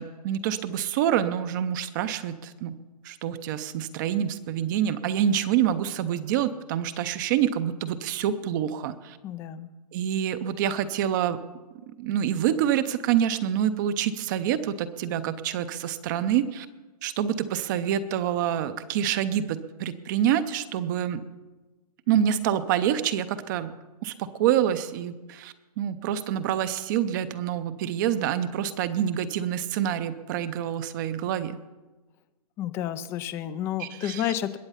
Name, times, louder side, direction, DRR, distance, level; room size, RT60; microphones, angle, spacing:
voice 1, 0.0-2.8 3.0-9.2 9.9-11.4 12.0-16.7 17.0-21.2 22.1-23.8 24.0-31.6 33.8-34.3, right 10 dB, 30° right, 12 dB, 0.6 m, -27 dB
voice 2, 9.2-9.7 32.6-34.6, left 11 dB, 10° left, 14 dB, 0.3 m, -30 dB
21.0 x 7.9 x 5.6 m, 1.2 s
hypercardioid pair, 145°, 20 cm